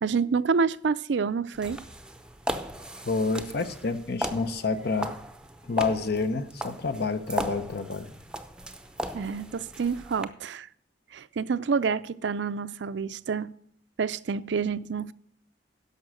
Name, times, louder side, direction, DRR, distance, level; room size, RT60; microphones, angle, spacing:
voice 1, 0.0-1.8 9.1-10.7 11.1-13.5 14.0-15.1, right 5 dB, 70° right, 0.5 m, -28 dB
sound 1, 1.5-10.2, equal, 5° right, 0.6 m, -37 dB
voice 2, 3.0-5.1 5.6-8.1, left 3 dB, 60° left, 0.9 m, -28 dB
11.0 x 6.6 x 6.3 m
head